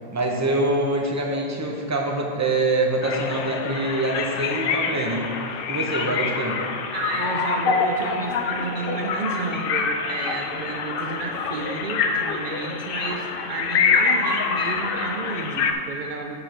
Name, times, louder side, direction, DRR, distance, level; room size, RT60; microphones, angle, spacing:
voice 1, 0.1-5.3 5.7-6.6, right 2 dB, 20° right, -1 dB, 0.6 m, -24 dB
sound 1, 3.0-15.7, left 5 dB, 65° left, 0.6 m, -26 dB
voice 2, 6.9-16.4, right 4 dB, 90° right, 2 dB, 0.4 m, -32 dB
5.9 x 5.1 x 5.8 m, 2.6 s
omnidirectional pair, 1.4 m